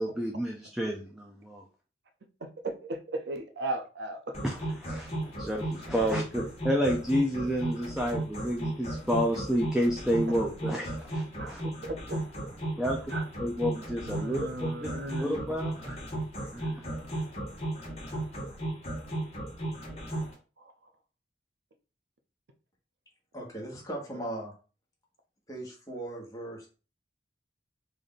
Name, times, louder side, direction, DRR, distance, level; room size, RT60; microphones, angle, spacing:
voice 1, 0.0-1.6 4.4-5.1 5.4-11.6 12.8-13.1 13.4-14.9 15.2-16.0 16.5-16.9, equal, 5° right, -1 dB, 0.5 m, -30 dB
voice 2, 2.4-4.4 11.4-12.2 13.1-13.2 14.1-15.4 20.6-20.7, right 2 dB, 70° right, 6 dB, 0.6 m, -36 dB
sound 1, 4.3-20.3, right 1 dB, 35° left, 1.2 m, -35 dB
voice 3, 23.3-24.5 25.5-26.7, right 1 dB, 20° left, -2 dB, 1.2 m, -38 dB
3.3 x 2.6 x 3.9 m, 0.35 s
head